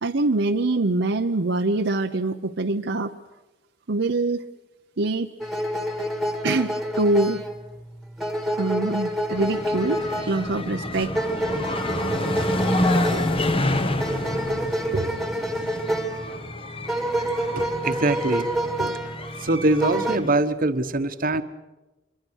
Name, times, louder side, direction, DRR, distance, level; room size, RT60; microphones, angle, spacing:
voice 1, 0.0-3.1 3.9-4.5 5.0-5.3 6.4-7.4 8.6-11.1 13.1-13.3 14.5-15.2 18.8-19.1, right 2 dB, 65° right, 4 dB, 0.8 m, -24 dB
sound 1, 5.4-20.2, right 1 dB, ahead, 2.0 m, -28 dB
sound 2, 9.3-20.3, left 1 dB, 30° left, 1.4 m, -28 dB
voice 2, 17.5-18.5 19.4-21.4, right 2 dB, 50° right, 10 dB, 1.2 m, -23 dB
26.0 x 22.5 x 6.4 m, 1.1 s
head